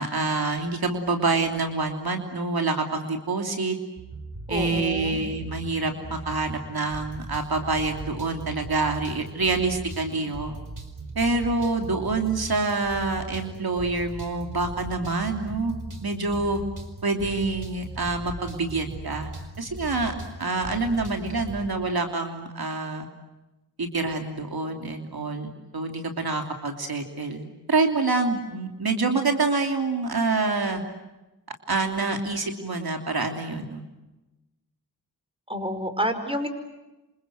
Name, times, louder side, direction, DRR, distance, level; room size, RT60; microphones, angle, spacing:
voice 1, 0.0-3.8 4.5-10.6 11.1-16.6 17.0-19.3 19.6-23.1 23.8-30.8 31.7-33.8, right 3 dB, 70° right, 4 dB, 3.1 m, -27 dB
sound 1, 4.0-21.7, right 2 dB, 55° right, 4.9 m, -39 dB
voice 2, 4.5-5.2 35.5-36.5, equal, 15° right, 9 dB, 5.1 m, -29 dB
27.5 x 27.0 x 7.9 m, 1.0 s
cardioid pair, 45°, 38 cm